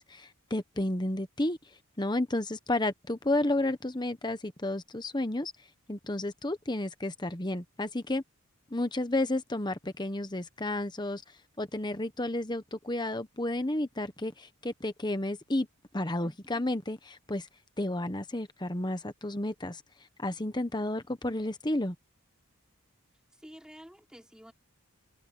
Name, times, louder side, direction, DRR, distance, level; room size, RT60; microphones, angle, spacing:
voice 1, 0.0-1.6 2.0-5.5 5.9-8.2 8.7-11.2 11.6-15.7 15.9-17.5 17.8-19.8 20.2-21.9, left 1 dB, 20° left, 1.1 m, -31 dB
voice 2, 16.2-16.6 23.3-24.5, equal, 5° right, 4.6 m, -51 dB
head